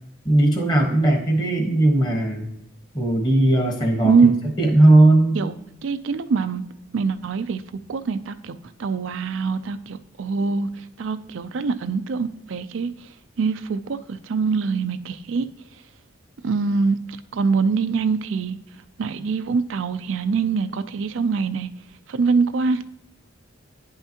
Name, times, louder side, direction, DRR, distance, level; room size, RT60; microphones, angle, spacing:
voice 1, 0.2-2.5 2.9-5.4, right 1 dB, 20° left, 1.2 m, -18 dB
voice 2, 4.0-4.4 5.3-5.5 5.8-6.6 6.9-7.6 7.9-10.7 11.0-12.9 13.4-15.5 16.4-17.0 17.3-18.6 19.0-21.7 22.1-22.8, right 5 dB, 70° right, 0.4 m, -23 dB
9.8 x 5.6 x 2.9 m
head